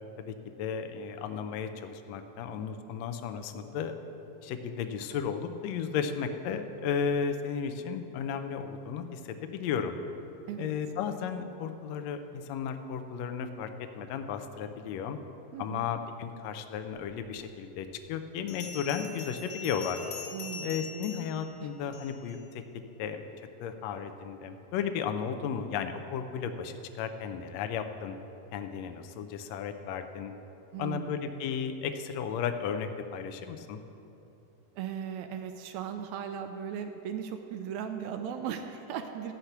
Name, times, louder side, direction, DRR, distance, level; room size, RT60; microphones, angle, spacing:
voice 1, 0.2-4.0 4.4-10.0 10.6-13.7 13.9-15.2 15.6-20.0 20.6-23.2 23.6-28.2 28.5-30.3 30.8-33.8, left 7 dB, 80° left, 7 dB, 1.5 m, -34 dB
voice 2, 15.5-15.8 20.3-21.0 21.6-21.7 30.7-31.3 34.8-39.3, right 8 dB, 85° right, 7 dB, 1.6 m, -37 dB
Bell, 18.5-22.4, left 4 dB, 50° left, 1.3 m, -43 dB
13.5 x 5.8 x 8.0 m, 2.9 s
omnidirectional pair, 3.8 m